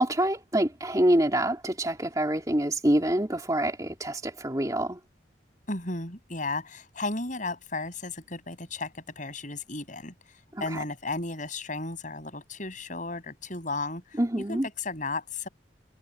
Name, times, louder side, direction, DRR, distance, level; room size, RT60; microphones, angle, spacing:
voice 1, 0.0-5.0 10.6-10.8 14.2-14.7, right 1 dB, 20° right, 3.0 m, -26 dB
voice 2, 5.7-14.2 14.5-15.5, left 3 dB, 40° left, 6.9 m, -34 dB
head